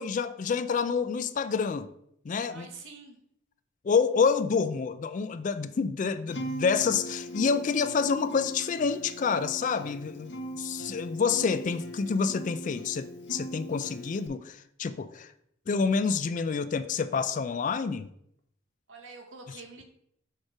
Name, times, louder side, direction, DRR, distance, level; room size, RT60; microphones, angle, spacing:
voice 1, 0.0-1.9 2.3-2.7 3.8-15.3 15.7-18.1, left 5 dB, 40° left, 0.3 m, -28 dB
voice 2, 2.5-3.2 18.9-19.8, right 4 dB, 75° right, 1.2 m, -46 dB
Acoustic guitar, 6.3-14.3, right 1 dB, 60° left, 1.0 m, -40 dB
6.4 x 3.2 x 4.7 m
head